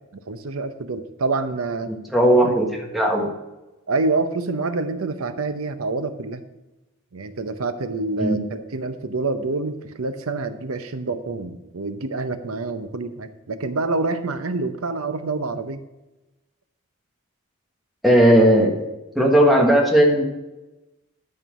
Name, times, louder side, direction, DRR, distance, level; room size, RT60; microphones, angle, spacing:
voice 1, 0.3-1.9 2.4-2.6 3.9-6.4 7.1-15.8, right 3 dB, 80° right, 9 dB, 0.8 m, -27 dB
voice 2, 2.1-2.7 2.9-3.3 8.2-8.4 18.0-18.7 19.1-20.2, right 1 dB, ahead, -1 dB, 1.5 m, -16 dB
12.0 x 4.5 x 6.1 m, 1.0 s
head